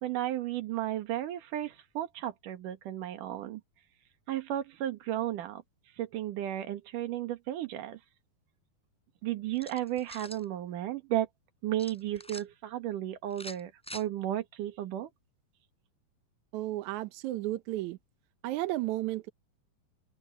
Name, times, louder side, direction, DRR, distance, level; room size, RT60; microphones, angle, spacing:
voice 1, 0.0-3.6 4.3-5.6 6.0-8.0 9.2-11.3 11.6-15.1, right 12 dB, 60° right, 3.0 m, -34 dB
sound 1, 9.5-10.4 11.8-12.4 13.3-14.0, equal, ahead, 3.9 m, -45 dB
voice 2, 16.5-18.0 18.4-19.3, right 16 dB, 80° right, 1.7 m, -33 dB
open air
omnidirectional pair, 4.4 m